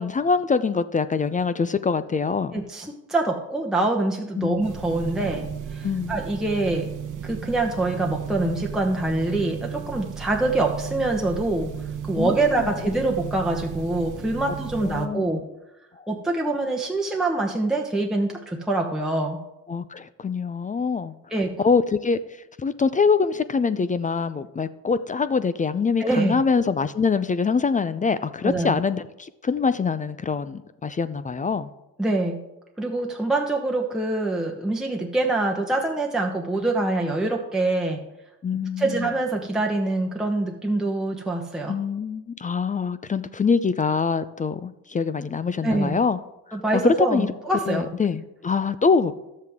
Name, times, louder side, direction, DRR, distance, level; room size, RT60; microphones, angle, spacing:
voice 1, 0.0-2.5 4.4-4.7 5.8-6.2 12.2-12.7 14.8-15.4 16.0-16.1 19.7-21.1 21.6-22.2 22.6-31.7 38.4-39.1 41.7-46.2 46.5-47.3 47.6-49.1, left 5 dB, 20° left, 13 dB, 0.4 m, -24 dB
voice 2, 2.5-6.9 7.2-11.7 12.0-15.4 16.1-19.4 21.3-21.6 26.0-26.4 28.4-28.8 32.0-32.4 32.8-38.0 38.8-41.8 45.6-46.0 46.5-47.9, right 2 dB, ahead, 0 dB, 1.0 m, -25 dB
sound 1, 4.6-15.1, right 7 dB, 55° right, 1.1 m, -35 dB
11.5 x 7.4 x 3.6 m, 0.94 s
supercardioid pair, 65°, 38 cm